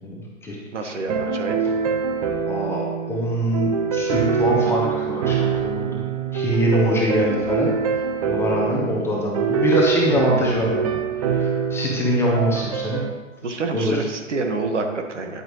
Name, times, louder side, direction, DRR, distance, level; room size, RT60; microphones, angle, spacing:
voice 1, 0.0-0.6 0.8-0.9 2.5-6.0 6.3-7.7 8.3-10.9 11.3-13.0 13.7-14.0, equal, 5° left, -3 dB, 1.0 m, -23 dB
voice 2, 0.7-1.7 6.9-7.1 13.4-15.4, right 3 dB, 65° right, 4 dB, 1.7 m, -28 dB
sound 1, 1.1-13.1, right 6 dB, 25° right, 0.7 m, -24 dB
9.9 x 9.0 x 3.2 m, 1.3 s
figure-of-eight pair, 135°, 39 cm